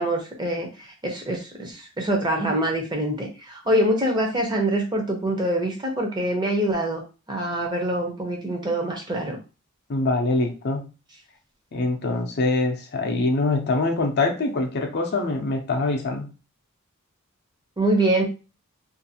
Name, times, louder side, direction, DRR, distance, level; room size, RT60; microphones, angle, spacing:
voice 1, 0.0-7.0 7.3-9.4 17.8-18.2, right 1 dB, 20° right, 1 dB, 0.6 m, -25 dB
voice 2, 9.9-10.9 11.7-16.3, left 3 dB, 50° left, 4 dB, 0.5 m, -24 dB
2.5 x 2.4 x 2.7 m, 0.31 s
head